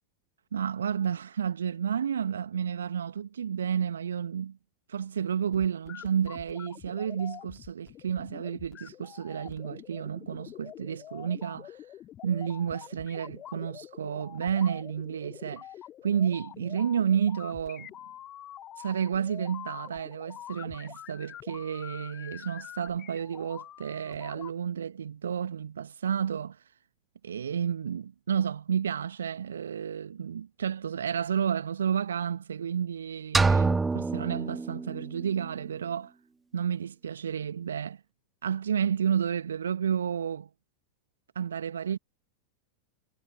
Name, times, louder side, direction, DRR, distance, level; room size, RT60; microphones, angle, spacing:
voice 1, 0.5-4.6 4.9-11.8 12.2-15.7 16.0-17.9 18.8-26.6 27.2-36.1 36.5-38.0 38.4-40.5 41.3-42.0, right 8 dB, 65° right, 1.4 m, -31 dB
sound 1, 5.5-24.5, left 12 dB, 30° left, 2.8 m, -46 dB
sound 2, 33.3-35.3, right 4 dB, 10° right, 0.4 m, -26 dB
figure-of-eight pair, 90°, 0 cm